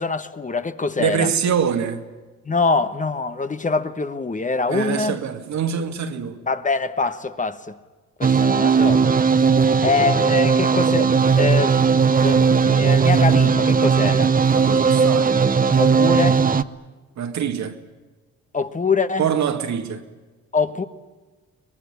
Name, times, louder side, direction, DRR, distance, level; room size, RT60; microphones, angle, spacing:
voice 1, 0.0-1.3 2.4-5.2 6.5-7.8 8.2-9.1 9.8-11.9 12.2-14.3 15.8-16.4 18.5-19.3 20.5-20.8, left 4 dB, 25° left, 1.3 m, -24 dB
voice 2, 1.0-2.1 4.7-6.4 14.5-15.4 17.2-17.8 19.2-20.1, right 7 dB, 65° right, 2.2 m, -24 dB
sound 1, 8.2-16.6, right 5 dB, 30° right, 0.8 m, -17 dB
23.5 x 19.5 x 9.7 m
cardioid pair, 90°, 30 cm